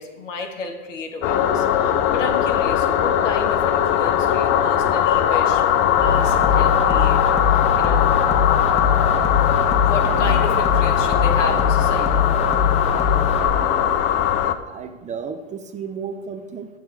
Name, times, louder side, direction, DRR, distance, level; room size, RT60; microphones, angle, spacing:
voice 1, 0.0-8.1 9.7-12.2, left 3 dB, 80° left, 4 dB, 1.3 m, -32 dB
sound 1, 1.2-14.5, left 10 dB, 40° left, 0.5 m, -19 dB
sound 2, 6.0-13.5, left 6 dB, 15° left, 0.8 m, -22 dB
voice 2, 10.0-10.4 13.4-14.0 14.7-16.7, right 6 dB, 20° right, 7 dB, 0.5 m, -33 dB
7.7 x 6.8 x 3.3 m, 1.3 s
hypercardioid pair, 95°, 37 cm